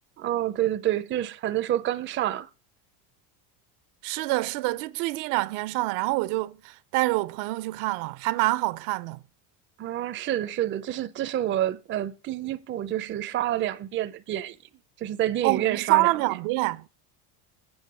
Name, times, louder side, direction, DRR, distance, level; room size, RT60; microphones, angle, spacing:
voice 1, 0.2-2.5 9.8-14.6 15.0-16.1, right 12 dB, 25° right, 0.5 m, -28 dB
voice 2, 4.0-9.2 15.4-16.8, right 20 dB, 70° right, 0.6 m, -26 dB
8.7 x 5.1 x 6.2 m
supercardioid pair, 105°, 48 cm